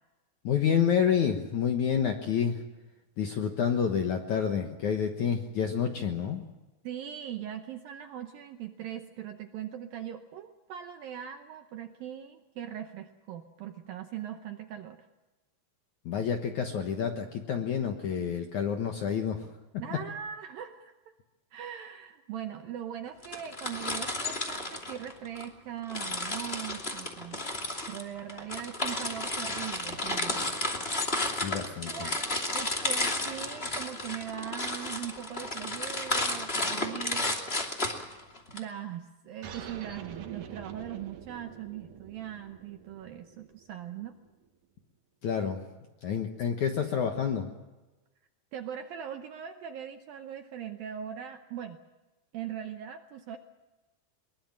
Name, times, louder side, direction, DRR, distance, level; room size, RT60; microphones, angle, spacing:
voice 1, 0.4-2.6 3.2-6.4 16.1-19.5 31.4-32.1 45.2-45.6 46.0-47.5, left 7 dB, 65° left, 4 dB, 1.9 m, -28 dB
voice 2, 6.8-15.1 19.8-20.9 21.5-27.4 27.9-30.5 31.8-37.4 37.7-38.2 38.5-44.1 48.5-51.8 52.3-53.4, right 10 dB, 75° right, 7 dB, 2.2 m, -40 dB
sound 1, 23.2-25.5 25.9-38.6, left 2 dB, 20° left, 1.9 m, -32 dB
sound 2, 39.4-44.5, right 7 dB, 60° right, 2.4 m, -46 dB
22.5 x 22.0 x 7.5 m, 1.1 s
omnidirectional pair, 5.2 m